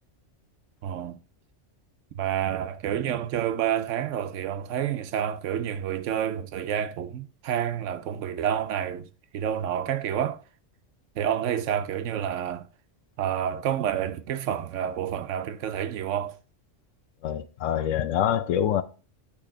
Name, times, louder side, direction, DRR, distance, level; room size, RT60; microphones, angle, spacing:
voice 1, 0.8-1.2 2.2-9.1 9.3-10.4 11.2-12.7 13.2-16.4, right 9 dB, 85° right, 1.0 m, -29 dB
voice 2, 17.2-18.8, left 10 dB, 90° left, 1.0 m, -25 dB
8.5 x 3.4 x 3.7 m
omnidirectional pair, 1.3 m